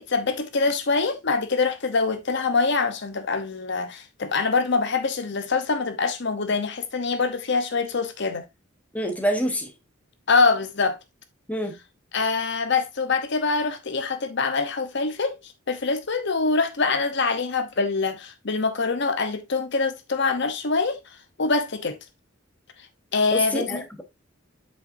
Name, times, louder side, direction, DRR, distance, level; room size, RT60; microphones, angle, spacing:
voice 1, 0.1-8.4 10.3-11.0 12.1-15.4 15.7-21.0 21.4-22.0 23.1-23.8, left 4 dB, 60° left, 0.9 m, -24 dB
voice 2, 8.9-9.7 11.5-11.7 23.3-24.0, equal, 5° left, 1.1 m, -26 dB
7.8 x 5.6 x 2.6 m
head